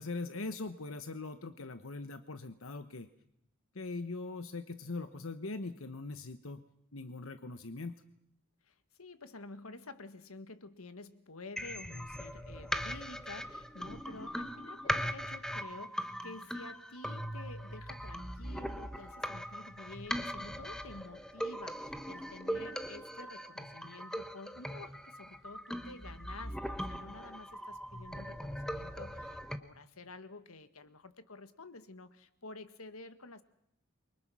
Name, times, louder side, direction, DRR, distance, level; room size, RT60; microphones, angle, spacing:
voice 1, 0.0-3.1 3.7-6.6 6.9-7.9, left 3 dB, 70° left, 10 dB, 1.1 m, -41 dB
voice 2, 8.6-33.4, left 3 dB, 90° left, 11 dB, 1.6 m, -50 dB
sound 1, 11.6-29.6, equal, 5° left, 1.1 m, -40 dB
29.0 x 24.0 x 6.2 m, 0.75 s
head